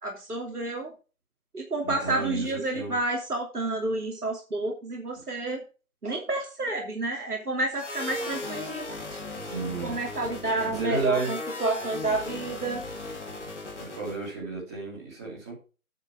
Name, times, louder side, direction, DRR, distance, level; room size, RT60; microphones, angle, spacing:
voice 1, 0.0-0.9 1.5-5.6 6.0-9.2 9.5-9.6 9.8-12.8, right 2 dB, 85° right, 0 dB, 2.9 m, -30 dB
voice 2, 1.8-2.5 2.7-2.9 9.4-10.0 10.6-11.3 13.8-15.5, right 3 dB, 10° right, -7 dB, 3.3 m, -33 dB
sound 1, 7.8-14.3, left 2 dB, 50° left, 2.4 m, -37 dB
9.7 x 6.3 x 4.8 m, 0.33 s
figure-of-eight pair, 165°, 45 cm